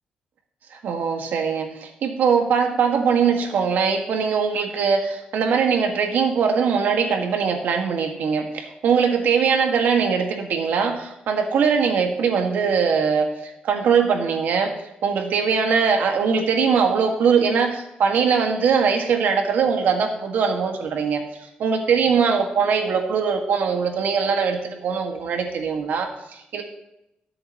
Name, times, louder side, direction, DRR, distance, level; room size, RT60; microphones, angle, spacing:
voice 1, 0.7-14.7 15.0-26.6, right 6 dB, 80° right, 3 dB, 1.8 m, -21 dB
20.0 x 7.8 x 3.1 m, 0.85 s
cardioid pair, 120°, 3 cm